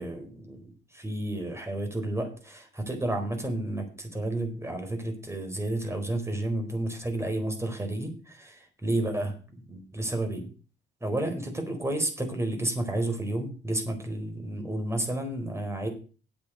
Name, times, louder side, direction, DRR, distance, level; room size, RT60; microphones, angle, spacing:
voice 1, 0.0-10.5 11.0-15.9, right 1 dB, 15° right, 4 dB, 4.5 m, -31 dB
8.6 x 8.5 x 8.0 m, 0.38 s
cardioid pair, 90°, 20 cm